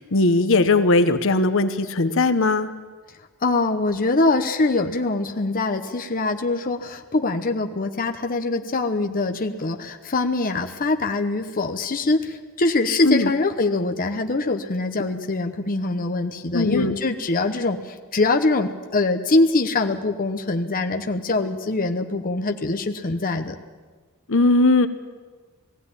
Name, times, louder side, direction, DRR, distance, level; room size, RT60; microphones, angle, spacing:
voice 1, 0.0-2.7 13.0-13.3 16.5-17.0 24.3-24.9, left 2 dB, 65° left, 10 dB, 1.1 m, -19 dB
voice 2, 3.4-23.6, left 2 dB, 40° left, 5 dB, 1.0 m, -23 dB
19.5 x 15.5 x 9.8 m, 1.4 s
head